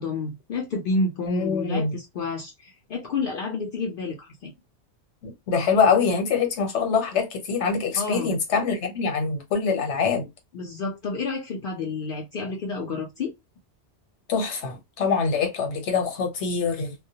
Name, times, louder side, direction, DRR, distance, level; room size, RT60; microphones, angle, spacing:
voice 1, 0.0-4.5 8.0-8.3 10.5-13.3, left 3 dB, 60° left, 0.6 m, -30 dB
voice 2, 1.3-2.0 5.2-10.3 14.3-16.9, left 5 dB, 80° left, 1.1 m, -24 dB
2.2 x 2.1 x 2.7 m
omnidirectional pair, 1.2 m